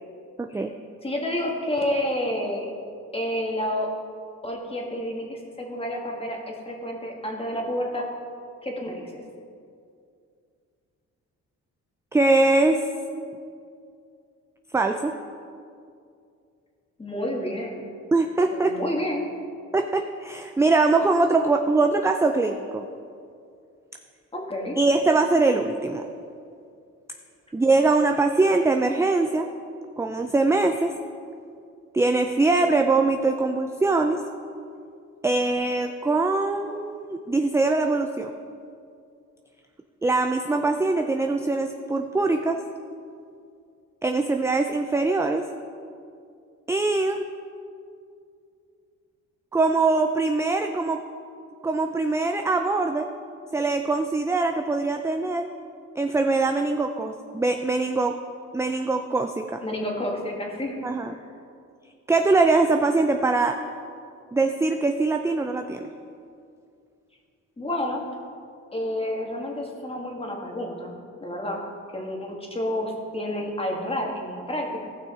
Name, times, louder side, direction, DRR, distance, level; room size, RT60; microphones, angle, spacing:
voice 1, 0.4-0.7 12.1-12.9 14.7-15.2 18.1-18.8 19.7-22.8 24.8-26.0 27.5-29.5 30.0-31.0 31.9-34.2 35.2-38.3 40.0-42.6 44.0-45.5 46.7-47.2 49.5-51.0 51.6-53.1 53.5-55.5 56.0-58.2 58.5-59.6 60.8-61.2 62.1-63.6 64.3-65.9, right 3 dB, 10° right, 5 dB, 0.4 m, -22 dB
voice 2, 1.0-2.7 3.1-3.9 4.4-8.1 8.6-9.2 17.0-17.8 18.5-19.3 24.3-24.8 59.6-60.8 67.6-68.1 68.7-70.9 71.2-71.6 71.9-74.9, left 1 dB, 20° left, 0 dB, 1.8 m, -29 dB
16.0 x 6.0 x 3.8 m, 2.4 s
cardioid pair, 90°, 30 cm